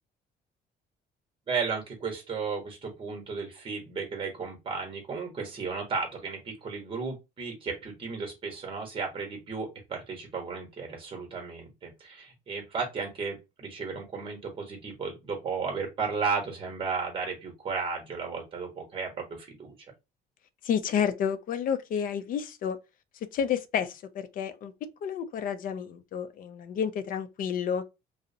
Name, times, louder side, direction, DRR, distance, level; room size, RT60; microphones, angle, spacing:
voice 1, 1.5-19.7, right 5 dB, 30° right, 0.9 m, -34 dB
voice 2, 20.6-22.8 23.3-24.7 25.0-27.8, left 8 dB, 55° left, 0.4 m, -30 dB
2.5 x 2.0 x 2.5 m
cardioid pair, 110°, 17 cm